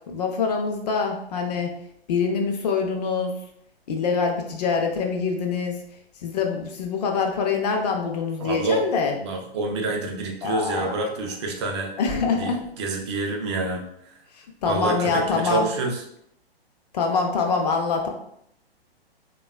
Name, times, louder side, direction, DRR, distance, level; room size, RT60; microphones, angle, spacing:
voice 1, 0.1-1.7 2.1-3.3 3.9-5.8 6.2-9.2 10.4-11.0 12.0-12.6 14.3-15.7 16.9-18.1, left 5 dB, 40° left, 2 dB, 0.5 m, -25 dB
voice 2, 8.4-8.9 9.2-11.9 12.3-14.2 14.7-16.0, right 2 dB, 30° right, 2 dB, 0.4 m, -27 dB
3.3 x 2.2 x 2.2 m, 0.74 s
figure-of-eight pair, 120°, 31 cm